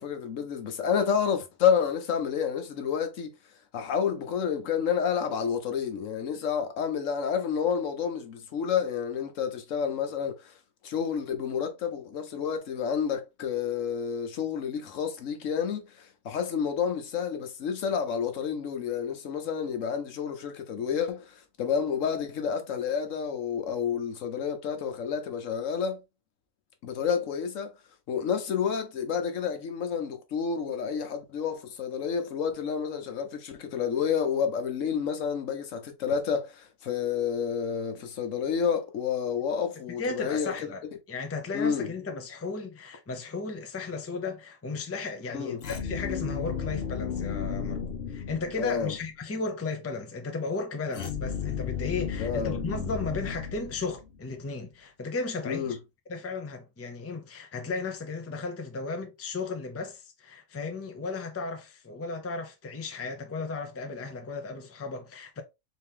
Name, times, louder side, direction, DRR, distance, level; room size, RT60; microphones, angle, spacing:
voice 1, 0.0-3.3 3.7-10.5 10.8-26.0 26.8-27.7 28.1-40.5 41.5-41.9 45.3-45.6 48.6-48.9 52.2-52.6 55.5-55.7, left 7 dB, 85° left, 1.2 m, -29 dB
voice 2, 39.9-47.8 48.1-55.8 56.1-65.4, left 3 dB, 20° left, 0.4 m, -35 dB
sound 1, 45.6-48.9 50.9-54.2, left 7 dB, 55° left, 1.0 m, -34 dB
4.0 x 2.8 x 3.6 m
omnidirectional pair, 1.3 m